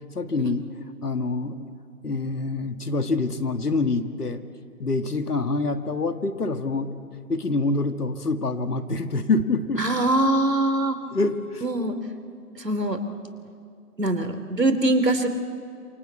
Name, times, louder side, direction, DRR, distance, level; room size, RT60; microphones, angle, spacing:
voice 1, 0.1-0.7 1.0-1.7 2.0-4.4 4.8-7.0 7.3-9.8 11.1-11.6, left 3 dB, 70° left, 8 dB, 2.0 m, -26 dB
voice 2, 9.8-11.0 11.6-11.9 12.6-13.0 14.0-15.3, right 1 dB, 85° right, 8 dB, 3.0 m, -23 dB
27.5 x 25.0 x 8.3 m, 2.4 s
figure-of-eight pair, 160°, 48 cm